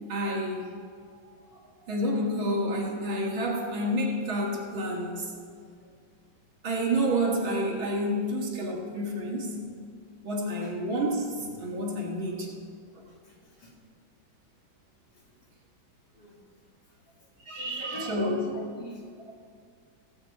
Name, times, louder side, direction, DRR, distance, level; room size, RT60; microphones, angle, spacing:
voice 1, 0.1-0.7 1.9-5.3 6.6-9.6 10.2-12.5 17.4-18.4, right 1 dB, 90° right, -2 dB, 2.6 m, -29 dB
voice 2, 13.1-13.7 15.1-15.2 16.1-16.4 17.2-17.3 17.5-19.1, equal, 55° left, -5 dB, 3.1 m, -43 dB
17.0 x 8.2 x 4.2 m, 2.2 s
omnidirectional pair, 2.1 m